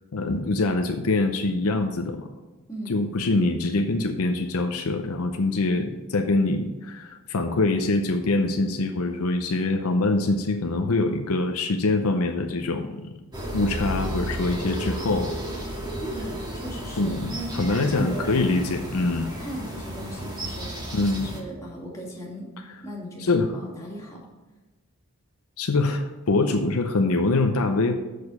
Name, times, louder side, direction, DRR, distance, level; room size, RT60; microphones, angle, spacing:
voice 1, 0.1-2.3 2.9-13.1 13.5-15.4 17.0-19.3 20.9-21.3 23.2-23.5 25.6-27.9, left 2 dB, 70° left, 5 dB, 0.7 m, -24 dB
voice 2, 2.7-3.0 16.1-17.5 17.9-19.0 19.3-22.5 22.8-24.2, equal, 15° left, -4 dB, 2.2 m, -38 dB
sound 1, 13.3-21.4, right 1 dB, 20° right, 1.7 m, -33 dB
6.8 x 6.4 x 5.4 m, 1.1 s
head